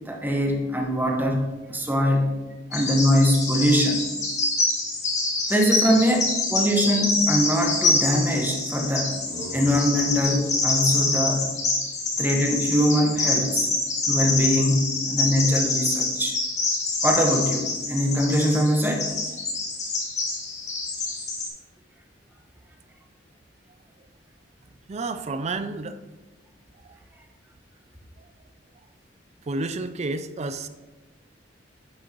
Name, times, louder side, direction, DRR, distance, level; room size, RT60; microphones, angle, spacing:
voice 1, 0.1-2.4 2.7-4.0 5.5-9.2 9.5-11.4 12.2-13.7 14.1-16.3 17.0-19.1, equal, 10° right, 1 dB, 1.0 m, -22 dB
Bird vocalization bird call bird song, 2.7-21.5, left 3 dB, 40° left, 1.9 m, -26 dB
sound 1, 9.2-12.6, equal, 20° left, 1.8 m, -43 dB
voice 2, 24.9-26.0 29.5-30.7, right 3 dB, 35° right, 11 dB, 0.4 m, -30 dB
9.7 x 6.5 x 3.0 m, 1.2 s
head